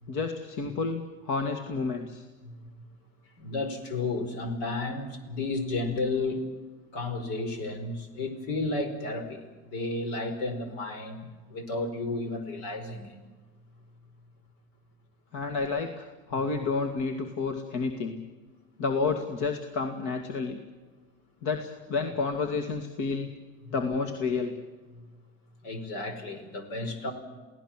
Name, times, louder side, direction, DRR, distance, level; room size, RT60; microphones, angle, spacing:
voice 1, 0.1-2.2 15.3-18.2 18.8-20.6 21.4-23.3 23.7-24.5, left 4 dB, 60° left, 5 dB, 2.4 m, -30 dB
voice 2, 2.4-2.8 3.4-6.4 6.9-9.4 9.7-13.2 16.3-16.4 23.6-23.7 24.9-25.0 25.6-27.1, left 2 dB, 75° left, 7 dB, 4.9 m, -33 dB
29.0 x 17.5 x 7.5 m, 1.3 s
supercardioid pair, 115°, 34 cm